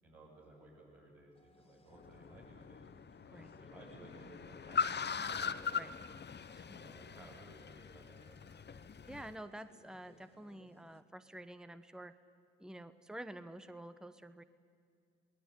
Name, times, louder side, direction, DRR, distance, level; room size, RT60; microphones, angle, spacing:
voice 1, 0.0-2.9 3.2-5.8 6.6-8.6, right 1 dB, 80° right, -4 dB, 7.7 m, -57 dB
sound 1, 1.3-11.0, left 2 dB, 20° left, 2.6 m, -64 dB
Car, 2.0-9.3, left 6 dB, 35° left, 1.1 m, -41 dB
voice 2, 9.1-12.1 12.6-14.4, right 1 dB, ahead, 12 dB, 1.1 m, -49 dB
27.0 x 19.0 x 9.9 m, 2.4 s
hypercardioid pair, 45°, 30 cm